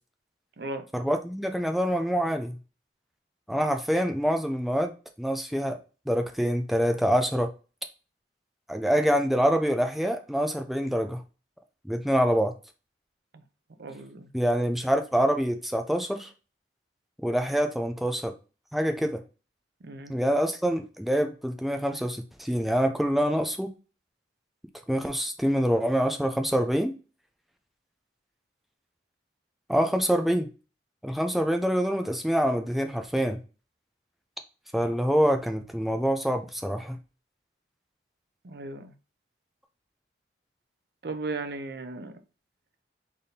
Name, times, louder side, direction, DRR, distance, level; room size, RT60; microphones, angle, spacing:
voice 1, 0.9-2.6 3.5-4.9 5.2-5.8 6.1-7.5 8.7-11.2 11.9-12.5 14.3-16.3 17.2-18.3 18.7-19.2 20.1-23.7 24.9-26.9 29.7-30.5 31.0-33.4 34.7-37.0, equal, ahead, 0.3 m, -25 dB
voice 2, 13.8-14.3 19.8-20.2 38.4-38.9 41.0-42.2, right 3 dB, 55° right, 0.5 m, -36 dB
4.1 x 3.4 x 2.7 m
head